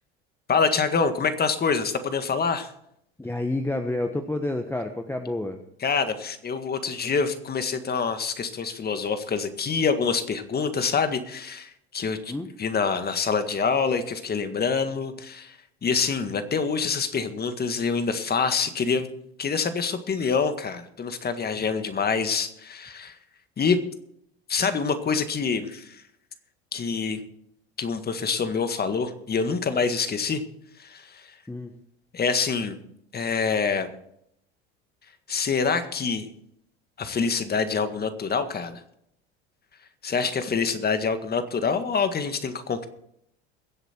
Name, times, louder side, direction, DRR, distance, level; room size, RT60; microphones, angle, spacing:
voice 1, 0.5-2.7 5.8-12.2 12.6-15.6 15.8-19.1 19.4-23.2 23.6-23.8 24.5-26.0 26.7-27.2 27.8-30.4 30.8-31.2 32.1-32.8 33.1-33.9 35.3-36.3 37.0-38.8 40.0-42.9, left 5 dB, 30° left, 9 dB, 1.8 m, -26 dB
voice 2, 3.2-5.6 12.3-12.5 31.5-31.8, left 2 dB, 5° left, 6 dB, 1.2 m, -29 dB
22.5 x 8.0 x 4.5 m, 0.73 s
hypercardioid pair, 80°, 31 cm